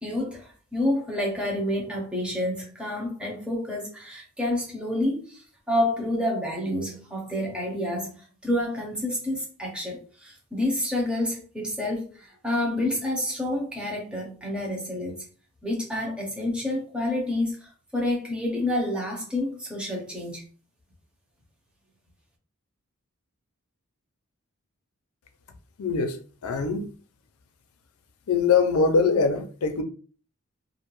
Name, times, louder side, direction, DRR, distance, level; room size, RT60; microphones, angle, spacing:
voice 1, 0.0-15.2 15.6-20.4, left 1 dB, 5° right, 0.7 m, -29 dB
voice 2, 25.8-26.2 26.4-26.9 28.3-29.8, left 5 dB, 80° left, 0.5 m, -22 dB
2.5 x 2.2 x 3.0 m
head